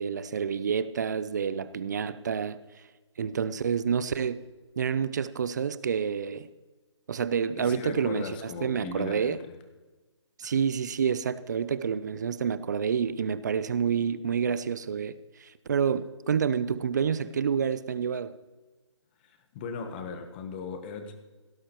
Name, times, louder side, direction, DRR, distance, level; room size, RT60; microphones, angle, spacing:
voice 1, 0.0-2.6 3.2-4.4 4.8-6.5 7.1-8.2 8.6-9.4 10.4-18.3, right 7 dB, 40° right, 0.5 m, -28 dB
voice 2, 7.6-9.5 10.4-10.5 19.2-21.1, left 5 dB, 20° left, 1.1 m, -38 dB
17.0 x 11.0 x 3.0 m
figure-of-eight pair, 155°, 15 cm